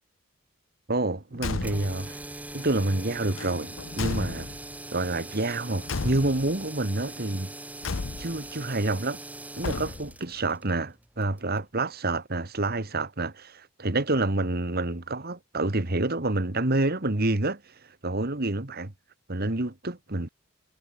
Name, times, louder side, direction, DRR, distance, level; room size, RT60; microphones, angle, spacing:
voice 1, 0.9-2.2 2.5-4.5 4.9-7.5 8.2-9.2 9.6-17.6 18.0-18.9 19.3-20.3, right 2 dB, 45° right, 1.8 m, -28 dB
Car / Truck / Slam, 1.3-2.1 3.3-4.8 5.8-6.6 7.8-8.5 9.6-10.3, left 4 dB, 65° left, 0.7 m, -34 dB
sound 1, 1.6-11.7, right 2 dB, 5° right, 1.2 m, -42 dB
head